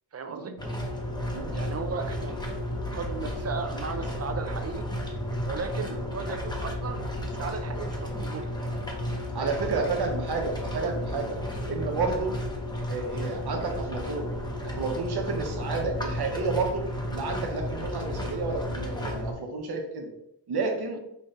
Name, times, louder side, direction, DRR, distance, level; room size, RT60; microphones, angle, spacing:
voice 1, 0.1-0.5 1.5-2.6 2.9-4.9 5.4-7.0 7.3-8.4 9.4-9.8, right 5 dB, 35° right, 8 dB, 0.5 m, -36 dB
sound 1, 0.6-19.3, equal, 10° left, 0.9 m, -33 dB
voice 2, 9.3-11.4 11.7-12.4 12.9-14.3 14.6-20.1 20.5-21.0, right 4 dB, 65° right, 3 dB, 1.0 m, -31 dB
5.1 x 2.6 x 3.3 m, 0.79 s
cardioid pair, 105°, 42 cm